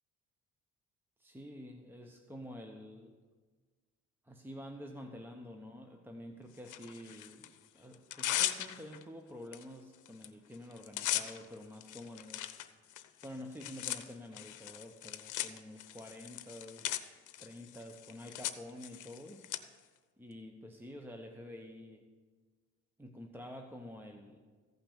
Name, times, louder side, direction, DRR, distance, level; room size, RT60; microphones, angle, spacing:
voice 1, 1.2-3.2 4.2-12.7 13.2-17.0 17.4-19.5 20.2-22.0 23.0-24.4, left 1 dB, 5° right, 4 dB, 0.9 m, -49 dB
Tearing, 6.7-7.5 7.9-9.0 9.5-9.6 9.9-10.3 10.5-19.6, left 13 dB, 80° left, 0.7 m, -39 dB
15.0 x 5.7 x 6.9 m, 1.4 s
cardioid pair, 90°, 30 cm